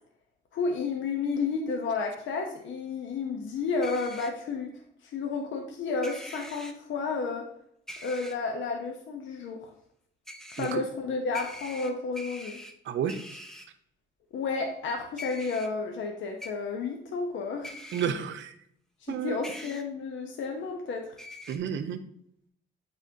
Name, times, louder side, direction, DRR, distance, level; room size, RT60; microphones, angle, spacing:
voice 1, 0.5-4.7 5.0-7.5 8.0-9.7 10.5-12.6 14.3-17.8 19.0-21.2, left 4 dB, 70° left, 2 dB, 0.9 m, -31 dB
sound 1, 3.8-4.3 6.0-6.7 7.9-8.3 10.3-10.7 11.3-12.7 13.1-13.6 15.2-15.7 16.4-16.5 17.6-18.1 19.4-19.8 21.2-21.6, left 1 dB, ahead, 0.7 m, -42 dB
voice 2, 12.9-13.2 17.9-18.5 19.1-19.4 21.5-22.0, right 8 dB, 70° right, 9 dB, 0.7 m, -31 dB
9.0 x 4.1 x 2.8 m, 0.69 s
cardioid pair, 90°, 20 cm